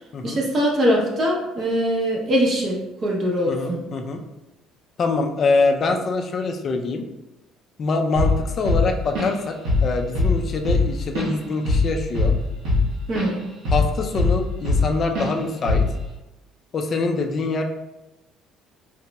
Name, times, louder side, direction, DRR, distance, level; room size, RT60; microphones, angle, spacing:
voice 1, 0.2-3.8 13.1-13.4, equal, 35° right, -2 dB, 0.6 m, -22 dB
voice 2, 3.5-4.2 5.0-7.0 7.8-9.5 9.8-12.4 13.7-15.9 16.7-17.6, left 3 dB, 35° left, 4 dB, 0.4 m, -24 dB
Drum kit / Drum, 8.2-8.4 8.7-9.4 9.7-9.9 10.2-13.3 13.7-14.9 15.2-15.3 15.7-16.0, left 3 dB, 80° right, 1.0 m, -20 dB
3.9 x 2.8 x 2.2 m, 0.96 s
cardioid pair, 145°, 0 cm